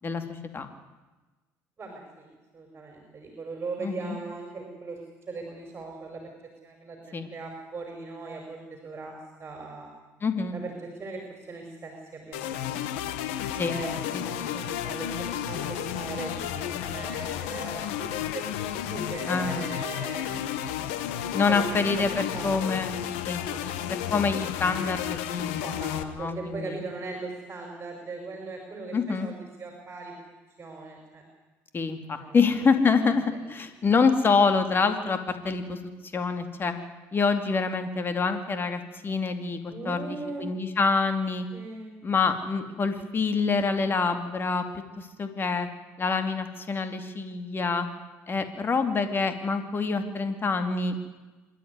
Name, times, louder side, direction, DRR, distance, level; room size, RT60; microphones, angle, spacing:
voice 1, 0.0-0.7 3.8-4.2 7.1-7.3 10.2-10.6 13.6-13.8 14.1-14.2 14.5-14.7 19.2-19.7 21.3-22.9 23.3-23.4 23.9-26.8 28.9-29.3 31.7-35.8 36.1-36.7 37.1-41.5 42.0-44.6 45.0-45.7 46.0-47.9 48.3-50.9, left 4 dB, 35° left, 8 dB, 2.5 m, -26 dB
voice 2, 1.8-5.0 5.3-6.3 6.6-9.1 9.4-9.9 10.5-12.9 13.7-18.4 18.7-20.3 21.3-21.9 22.3-22.5 23.4-23.6 24.1-24.2 25.6-31.2 32.1-32.4 32.8-33.1 39.7-40.4 41.5-42.0, right 3 dB, 30° right, 2 dB, 5.5 m, -39 dB
sound 1, 12.3-26.0, left 10 dB, 90° left, 1.4 m, -32 dB
26.0 x 12.5 x 9.7 m, 1.2 s
supercardioid pair, 85°, 7 cm